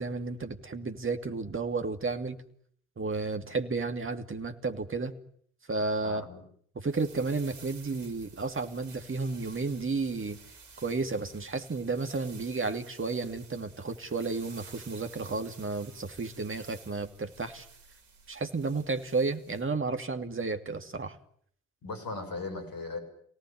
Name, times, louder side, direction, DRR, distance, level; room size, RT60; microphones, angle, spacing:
voice 1, 0.0-2.4 3.0-5.1 5.7-6.2 6.7-10.4 10.8-17.6 18.3-21.2, right 3 dB, 30° right, 7 dB, 2.8 m, -32 dB
voice 2, 6.0-6.4 21.8-23.0, left 3 dB, 50° left, 6 dB, 7.4 m, -37 dB
sound 1, 6.8-19.7, right 4 dB, 65° right, 3.9 m, -53 dB
28.0 x 18.0 x 9.5 m, 0.64 s
figure-of-eight pair, 45°, 44 cm